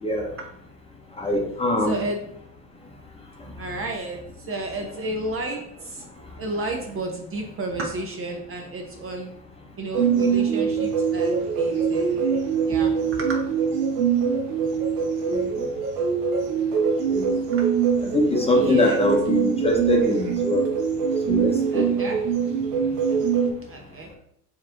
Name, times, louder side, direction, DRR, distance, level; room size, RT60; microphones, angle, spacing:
voice 1, 0.0-0.3 1.2-2.0 15.3-15.6 16.7-17.3 18.1-20.7 21.3-21.9, left 1 dB, 15° left, 1 dB, 0.9 m, -23 dB
voice 2, 1.8-2.2 3.5-4.2 4.5-6.1 6.4-9.3 9.8-12.4 12.7-13.4 17.5-17.7 18.5-19.0 21.7-22.2 22.8-22.9 23.7-24.1, right 2 dB, 30° right, 2 dB, 0.8 m, -32 dB
sound 1, 9.9-23.5, right 6 dB, 75° right, 1.0 m, -23 dB
4.6 x 2.9 x 3.8 m, 0.71 s
hypercardioid pair, 90°, 47 cm